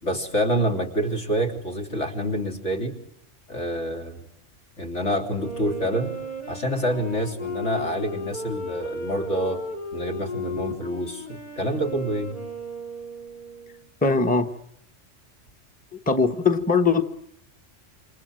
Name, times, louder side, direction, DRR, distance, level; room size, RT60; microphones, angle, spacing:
voice 1, 0.0-2.9 3.5-4.3 4.8-6.1 6.5-9.6 9.9-12.4, equal, 70° left, 2 dB, 3.9 m, -27 dB
Wind instrument woodwind instrument, 5.3-13.9, left 1 dB, 40° left, 4.1 m, -35 dB
voice 2, 14.0-14.5 16.1-17.0, left 4 dB, 5° left, 7 dB, 1.1 m, -20 dB
28.0 x 26.5 x 7.8 m, 0.78 s
omnidirectional pair, 1.3 m